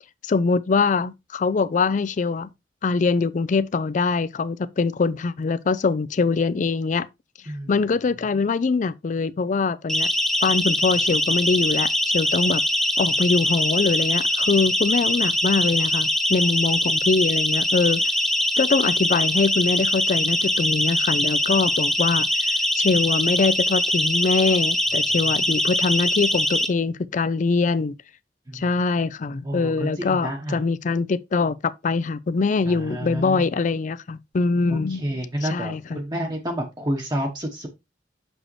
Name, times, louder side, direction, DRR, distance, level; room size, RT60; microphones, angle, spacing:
voice 1, 0.2-2.5 2.8-7.1 7.7-10.1 10.4-12.6 13.0-18.0 18.6-27.9 28.5-31.5 31.8-36.0, left 4 dB, 45° left, 0.4 m, -23 dB
Siren, 9.9-26.7, left 1 dB, ahead, 0.8 m, -22 dB
voice 2, 29.4-30.6 32.6-33.4 34.7-37.7, right 1 dB, 25° right, 1.1 m, -29 dB
6.4 x 6.1 x 3.1 m
head